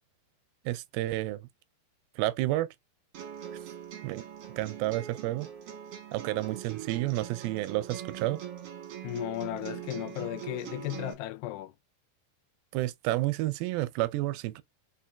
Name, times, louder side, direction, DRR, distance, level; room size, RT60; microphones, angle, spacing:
voice 1, 0.7-1.5 2.2-2.7 4.0-4.2 4.6-5.5 6.1-8.4 12.7-14.6, right 17 dB, 80° right, 2.2 m, -30 dB
sound 1, 3.1-11.1, right 10 dB, 60° right, 1.6 m, -42 dB
voice 2, 9.0-11.7, left 16 dB, 85° left, 2.7 m, -35 dB
5.2 x 4.4 x 2.3 m
omnidirectional pair, 4.7 m